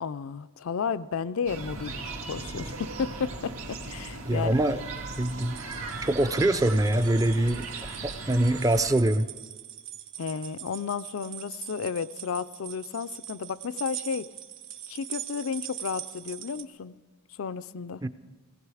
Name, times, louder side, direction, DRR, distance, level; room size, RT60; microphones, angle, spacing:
voice 1, 0.0-4.5 10.2-14.3 14.9-16.9 17.4-18.0, left 6 dB, 70° left, 14 dB, 0.4 m, -33 dB
sound 1, 1.5-8.9, right 3 dB, 85° right, 1.9 m, -38 dB
voice 2, 4.2-4.8 5.2-5.6 6.0-7.7 8.0-9.3 18.0-18.1, right 1 dB, 15° right, 12 dB, 0.5 m, -24 dB
sound 2, 5.0-16.6, right 11 dB, 60° right, 0.9 m, -42 dB
18.5 x 16.0 x 4.9 m, 1.3 s
head